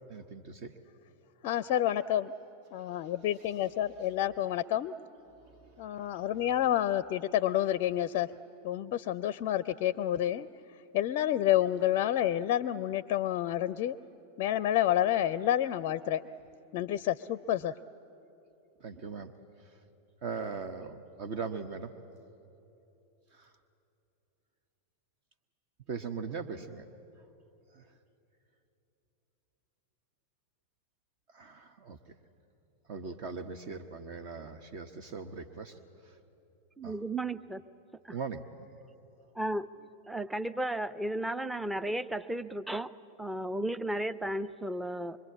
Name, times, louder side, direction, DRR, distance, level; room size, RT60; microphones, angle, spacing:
voice 1, 0.1-0.7 5.5-5.6 18.8-19.3 20.2-21.9 23.4-23.5 25.9-26.8 27.7-27.8 31.3-32.0 32.9-35.8 36.8-36.9 38.1-38.7, right 5 dB, 45° right, 9 dB, 1.1 m, -40 dB
voice 2, 1.4-2.3 2.7-4.9 5.8-8.3 8.6-10.5 10.9-14.0 14.4-16.2 16.7-17.7, left 12 dB, 45° left, 17 dB, 0.5 m, -29 dB
voice 3, 36.8-37.6 38.0-38.2 39.3-42.9 43.2-45.2, right 1 dB, 5° right, 12 dB, 0.7 m, -34 dB
25.0 x 23.5 x 8.6 m, 2.9 s
figure-of-eight pair, 90°, 0 cm